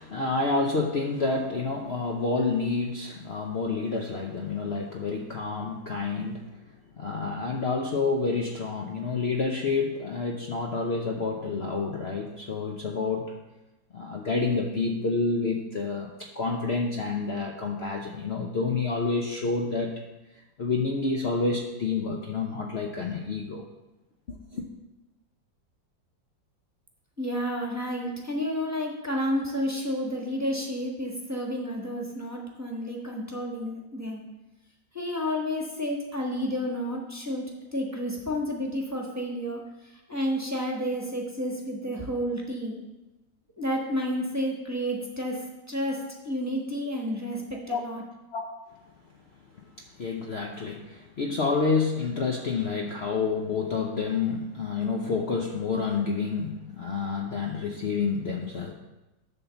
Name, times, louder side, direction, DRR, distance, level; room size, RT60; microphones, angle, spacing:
voice 1, 0.0-6.4 7.0-13.4 13.9-19.9 20.6-23.6 24.3-24.7 47.7-47.8 48.3-48.5 49.8-58.7, left 4 dB, 65° left, 1 dB, 0.6 m, -29 dB
voice 2, 27.2-34.2 34.9-37.5 37.7-42.8 43.6-48.0, equal, 10° right, -2 dB, 1.1 m, -31 dB
11.0 x 3.8 x 6.9 m, 1.0 s
omnidirectional pair, 2.0 m